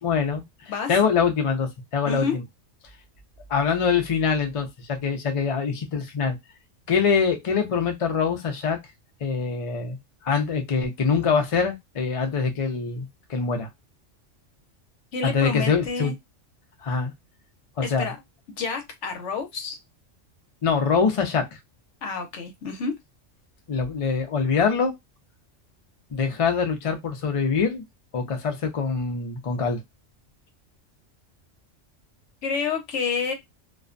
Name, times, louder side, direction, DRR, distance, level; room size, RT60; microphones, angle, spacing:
voice 1, 0.0-0.4 0.9-2.4 3.5-6.4 6.9-8.8 9.2-10.0 10.2-13.7 15.2-16.1 16.8-17.1 17.8-18.1 20.6-21.6 23.7-24.9 26.1-27.8 28.1-29.8, left 5 dB, 50° left, 0.4 m, -24 dB
voice 2, 15.1-16.1 17.8-18.2 18.6-19.8 22.0-22.9 32.4-33.3, left 5 dB, 70° left, 1.0 m, -29 dB
2.4 x 2.2 x 2.5 m
omnidirectional pair, 1.3 m